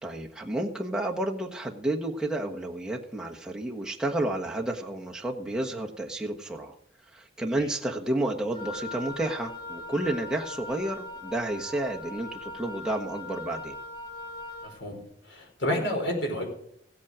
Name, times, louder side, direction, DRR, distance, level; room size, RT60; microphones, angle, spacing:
voice 1, 0.0-6.7 7.1-13.8, right 1 dB, 5° right, -1 dB, 1.3 m, -31 dB
Wind instrument woodwind instrument, 8.5-14.8, left 2 dB, 25° left, 1.7 m, -40 dB
voice 2, 14.6-16.4, equal, 85° left, 2 dB, 4.6 m, -30 dB
16.0 x 8.5 x 5.0 m, 0.71 s
head